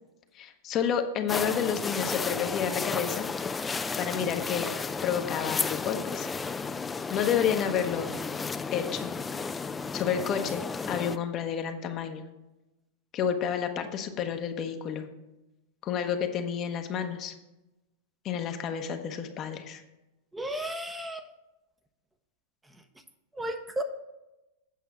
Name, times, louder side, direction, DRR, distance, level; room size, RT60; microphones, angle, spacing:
voice 1, 0.3-3.3 4.0-4.7 5.0-6.3 7.1-8.1 8.7-9.1 9.9-10.6 10.9-12.2 13.1-15.1 15.8-17.3 18.2-19.8, left 8 dB, 40° left, 6 dB, 1.0 m, -30 dB
sound 1, 1.3-11.2, left 4 dB, 15° left, 0.4 m, -33 dB
voice 2, 20.3-21.2 23.3-23.8, right 1 dB, 10° right, 6 dB, 0.8 m, -33 dB
8.4 x 5.5 x 5.9 m, 1.0 s
hypercardioid pair, 100°, 0 cm